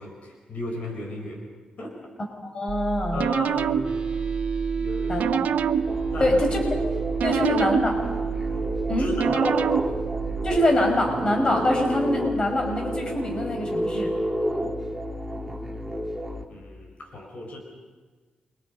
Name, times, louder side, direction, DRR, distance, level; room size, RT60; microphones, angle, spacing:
voice 1, 0.0-1.4 1.8-1.9 3.1-3.9 4.7-5.3 6.1-6.6 7.3-7.6 9.0-9.6 16.5-17.6, left 1 dB, 60° left, 1 dB, 5.2 m, -35 dB
voice 2, 2.4-3.2 5.1-5.4 6.2-6.8 7.2-7.9 8.9-9.1 9.4-9.5 10.4-14.1, left 1 dB, 35° left, 2 dB, 5.5 m, -24 dB
sound 1, 2.7-10.6, right 7 dB, 80° right, 0.7 m, -28 dB
sound 2, 3.8-15.9, right 6 dB, 40° right, 3.2 m, -33 dB
sound 3, 5.9-16.4, equal, 5° right, 2.4 m, -31 dB
29.5 x 24.0 x 5.4 m, 1.4 s
cardioid pair, 110°, 3 cm